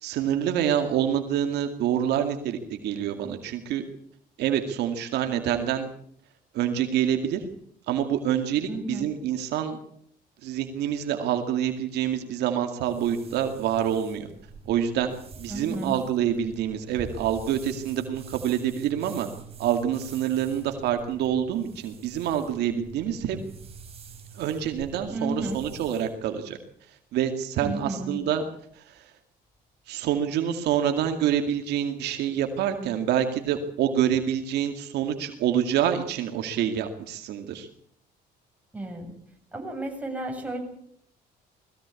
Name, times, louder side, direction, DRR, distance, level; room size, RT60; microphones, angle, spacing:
voice 1, 0.0-3.8 4.4-5.9 6.5-7.5 7.9-9.8 10.4-14.3 14.7-19.3 19.6-23.4 24.3-26.6 27.1-28.4 28.7-29.0 29.9-37.7, right 9 dB, 80° right, 6 dB, 2.3 m, -27 dB
voice 2, 8.7-9.0 15.5-16.0 25.1-25.6 27.6-28.2 38.7-39.1 39.5-40.6, right 2 dB, 10° right, 2 dB, 7.3 m, -32 dB
sound 1, 12.8-26.1, right 5 dB, 35° right, 4.4 m, -45 dB
20.5 x 16.0 x 8.4 m, 0.66 s
cardioid pair, 110°, 17 cm